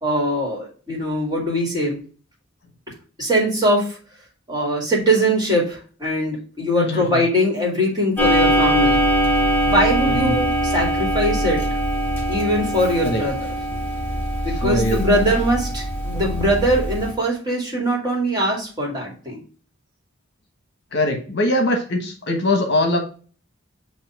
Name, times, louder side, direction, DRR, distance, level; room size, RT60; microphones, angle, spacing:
voice 1, 0.0-2.0 3.2-4.0 4.5-9.0 9.7-11.6 12.3-13.5 14.4-19.4, equal, 20° right, -2 dB, 2.1 m, -21 dB
voice 2, 6.8-7.2 10.0-10.4 13.0-13.2 14.5-15.2 20.9-23.0, left 1 dB, 50° left, 4 dB, 1.2 m, -22 dB
Clock, 8.2-17.1, equal, 10° left, 1.8 m, -22 dB
7.2 x 2.8 x 4.7 m, 0.39 s
head